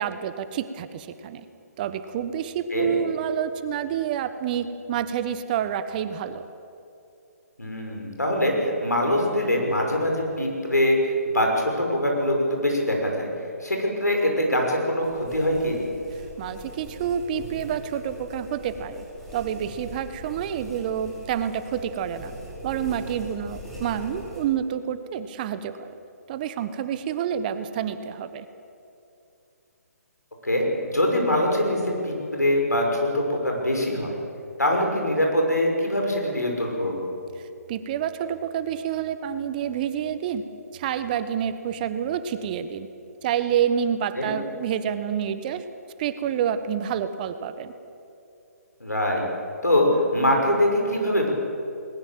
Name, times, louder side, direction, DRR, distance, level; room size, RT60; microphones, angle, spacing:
voice 1, 0.0-1.4 1.8-6.4 16.4-19.0 19.3-22.3 22.6-25.9 26.3-28.5 37.7-40.4 40.7-42.9 43.2-45.6 46.0-47.7, right 9 dB, 30° right, 12 dB, 1.1 m, -28 dB
voice 2, 7.6-13.3 13.6-15.8 30.4-34.2 34.6-37.1 44.2-44.3 48.8-49.2 49.6-51.3, left 1 dB, 90° left, 1 dB, 5.9 m, -23 dB
sound 1, 15.0-24.4, equal, ahead, 4.6 m, -41 dB
20.0 x 20.0 x 7.5 m, 2.6 s
figure-of-eight pair, 140°, 9 cm